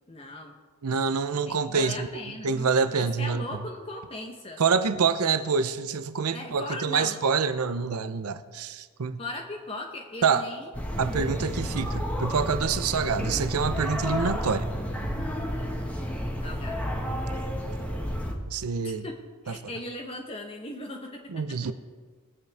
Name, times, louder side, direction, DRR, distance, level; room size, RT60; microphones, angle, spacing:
voice 1, 0.1-0.5 1.5-4.6 6.3-7.2 9.2-11.4 16.4-16.8 18.8-19.1 19.4-21.6, left 1 dB, 25° left, 0.9 m, -39 dB
voice 2, 0.8-2.1 2.4-3.4 4.6-9.2 10.2-10.5 11.0-14.7 18.5-19.1 21.3-21.7, right 5 dB, 90° right, 0.6 m, -26 dB
sound 1, 10.7-18.3, equal, 5° left, 1.4 m, -31 dB
21.5 x 8.1 x 3.4 m
head